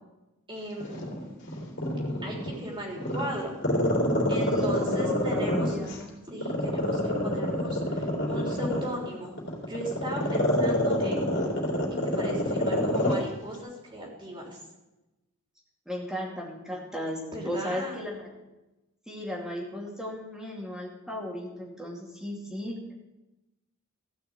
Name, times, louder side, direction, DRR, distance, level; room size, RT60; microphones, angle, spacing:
voice 1, 0.5-1.2 2.2-3.6 4.3-5.8 6.3-9.3 9.7-11.3 12.1-14.6 17.3-18.0, right 1 dB, 20° right, -2 dB, 3.3 m, -37 dB
Growling, 0.8-2.5 3.0-6.0 6.4-13.2 13.5-13.6, left 1 dB, 50° left, 3.3 m, -26 dB
voice 2, 4.4-6.1 10.2-10.5 15.9-18.3 19.1-22.8, left 1 dB, 5° right, -2 dB, 2.5 m, -36 dB
15.0 x 5.9 x 8.0 m, 1.0 s
head